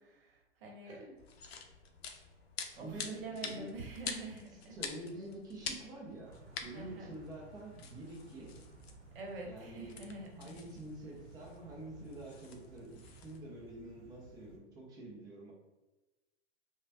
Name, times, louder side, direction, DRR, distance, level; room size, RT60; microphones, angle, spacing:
voice 1, 0.2-1.0 2.8-4.8 6.7-7.1 9.1-10.7, right 2 dB, 55° right, 1 dB, 0.9 m, -46 dB
sound 1, 1.2-13.4, left 6 dB, 60° left, 0.5 m, -48 dB
voice 2, 2.7-3.7 4.7-6.3 6.6-8.6 9.5-10.0 10.4-15.5, right 1 dB, 10° right, -2 dB, 0.4 m, -47 dB
sound 2, 6.2-14.6, right 4 dB, 80° right, 0.8 m, -56 dB
3.1 x 2.1 x 2.7 m, 1.1 s
hypercardioid pair, 125°, 34 cm